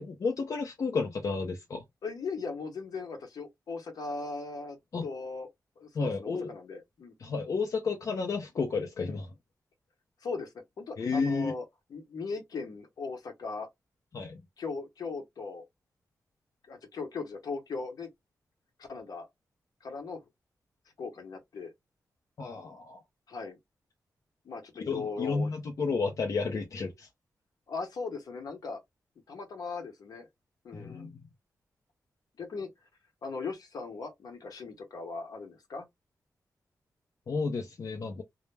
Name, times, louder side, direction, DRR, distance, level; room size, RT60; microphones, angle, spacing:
voice 1, 0.0-1.8 4.9-5.0 5.9-6.5 7.2-9.3 11.0-11.5 14.1-14.4 22.4-23.0 24.9-27.1 30.7-31.2 37.3-38.2, left 4 dB, 55° left, 0.5 m, -32 dB
voice 2, 2.0-4.8 5.0-5.5 5.8-7.1 10.2-11.6 11.9-13.7 14.6-15.6 16.7-18.1 18.8-19.3 19.8-20.2 21.0-21.7 23.3-23.6 24.4-25.5 27.7-28.8 29.3-30.3 30.6-31.1 32.4-32.7 33.2-35.9, left 4 dB, 75° left, 0.9 m, -38 dB
2.1 x 2.1 x 3.1 m
wide cardioid pair, 100°, 7 cm